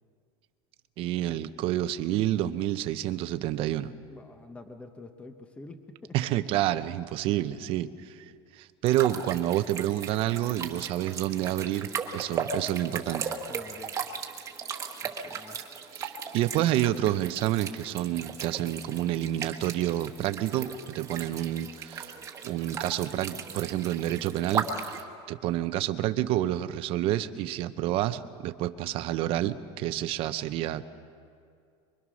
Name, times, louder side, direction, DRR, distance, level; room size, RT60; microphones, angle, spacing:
voice 1, 1.0-3.9 6.1-8.2 8.5-13.3 15.9-22.1 22.4-30.9, right 13 dB, 40° right, 11 dB, 0.8 m, -29 dB
voice 2, 4.1-6.2 13.5-14.0 15.0-15.6, left 2 dB, 10° left, 6 dB, 0.8 m, -47 dB
sound 1, 8.8-25.0, right 6 dB, 20° right, 1.4 m, -37 dB
24.5 x 24.0 x 6.3 m, 2.3 s
cardioid pair, 165°, 14 cm